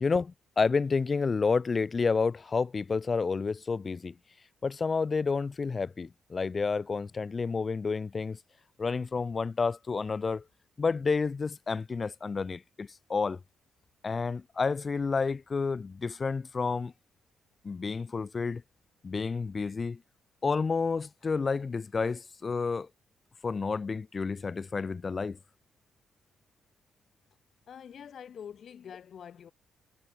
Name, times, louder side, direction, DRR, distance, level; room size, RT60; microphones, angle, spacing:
voice 1, 0.0-4.1 4.6-8.4 8.8-10.4 10.8-13.4 14.0-16.9 17.6-18.6 19.0-20.0 20.4-22.9 23.4-25.4, left 4 dB, 40° left, 0.6 m, -30 dB
voice 2, 27.7-29.5, left 8 dB, 60° left, 2.0 m, -45 dB
hypercardioid pair, 50°, 0 cm